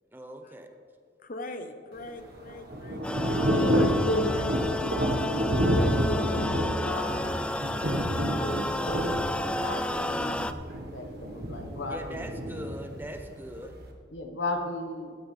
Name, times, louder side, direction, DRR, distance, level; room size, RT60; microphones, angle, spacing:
voice 1, 0.1-0.7 11.9-13.8, right 1 dB, 10° right, 6 dB, 0.8 m, -41 dB
voice 2, 1.2-3.4 4.3-4.5, left 2 dB, 50° left, 8 dB, 0.9 m, -42 dB
Thunder / Rain, 2.0-13.9, equal, 60° right, 1.4 m, -29 dB
sound 1, 3.0-10.5, left 1 dB, 5° left, 0.3 m, -32 dB
voice 3, 3.2-4.4 5.6-7.4 8.2-10.6 10.9-12.3 13.6-13.7 14.1-15.1, left 2 dB, 85° left, 5 dB, 1.3 m, -34 dB
16.0 x 12.0 x 3.4 m, 2.1 s
head